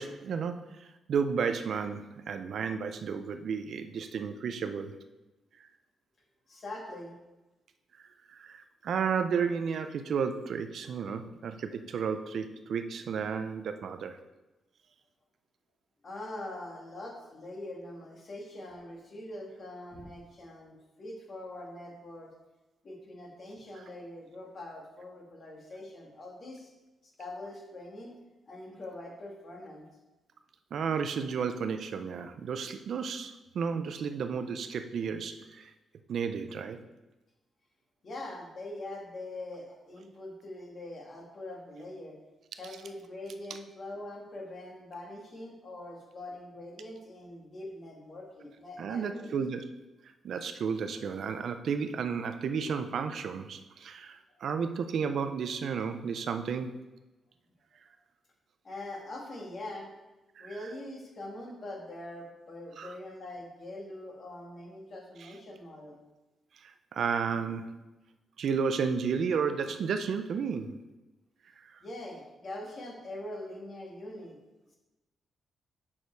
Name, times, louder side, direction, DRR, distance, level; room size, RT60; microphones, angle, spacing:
voice 1, 0.0-4.9 8.3-14.2 30.7-35.7 36.1-36.8 48.8-49.6 50.2-56.7 60.4-60.5 62.8-62.9 65.2-65.3 66.6-67.8 68.4-70.8 71.6-71.8, right 6 dB, 55° right, 9 dB, 0.6 m, -32 dB
voice 2, 6.5-7.1 16.0-22.3 22.8-26.7 27.0-28.1 28.5-29.8 38.0-42.2 42.6-49.3 58.6-59.9 60.4-65.9 71.8-74.4, left 1 dB, 35° left, -1 dB, 2.0 m, -43 dB
7.3 x 6.5 x 4.7 m, 1.1 s
wide cardioid pair, 165°, 0 cm